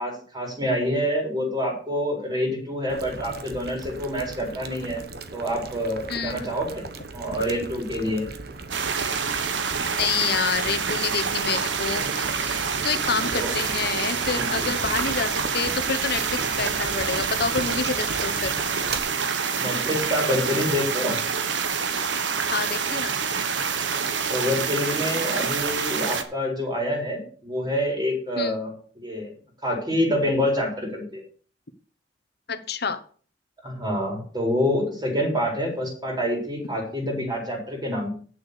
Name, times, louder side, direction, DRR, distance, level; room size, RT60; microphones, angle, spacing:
voice 1, 0.0-5.0 5.3-6.9 7.1-8.2 13.3-13.5 14.4-14.7 19.6-21.2 24.3-28.7 29.0-29.3 29.6-31.2 33.6-38.1, equal, 25° right, 0 dB, 4.2 m, -27 dB
Boiling, 2.9-19.0, right 3 dB, 60° right, 1.1 m, -38 dB
sound 1, 8.7-26.2, right 6 dB, 85° right, 1.2 m, -27 dB
voice 2, 9.9-18.5 22.5-23.2 28.4-28.6 32.5-33.0, left 5 dB, 60° left, 11 dB, 1.1 m, -28 dB
8.9 x 7.2 x 6.8 m, 0.44 s
head